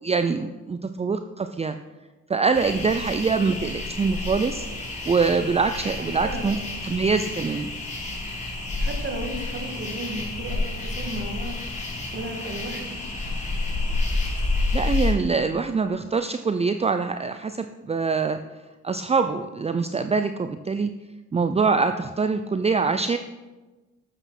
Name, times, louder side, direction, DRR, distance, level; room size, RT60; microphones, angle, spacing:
voice 1, 0.0-1.8 2.3-4.7 5.1-6.6 6.8-7.7 14.7-18.4 18.8-20.9 21.3-23.2, right 4 dB, 20° right, 9 dB, 0.5 m, -24 dB
sound 1, 2.5-15.1, left 3 dB, 25° left, 3.7 m, -29 dB
voice 2, 6.2-6.6 8.8-11.6 12.1-13.0, right 1 dB, 40° right, 3 dB, 2.4 m, -34 dB
12.0 x 7.9 x 5.9 m, 1.2 s
cardioid pair, 90°, 30 cm